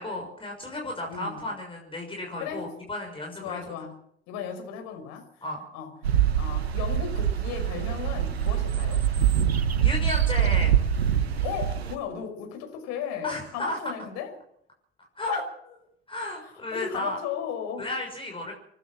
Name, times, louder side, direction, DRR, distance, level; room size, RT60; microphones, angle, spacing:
voice 1, 0.0-3.7 5.4-5.6 9.8-10.7 13.2-13.9 15.2-15.4 16.1-17.2 17.8-18.5, left 2 dB, 15° left, 0 dB, 6.3 m, -33 dB
voice 2, 1.1-1.4 2.4-2.7 3.4-4.0 4.3-5.3 5.7-5.9 6.3-9.0 11.4-14.3 15.3-15.4 16.7-17.9, left 8 dB, 60° left, 6 dB, 5.4 m, -35 dB
sound 1, 6.0-12.0, right 9 dB, 85° right, 1.2 m, -24 dB
28.0 x 12.0 x 7.7 m, 0.72 s
figure-of-eight pair, 65°, 31 cm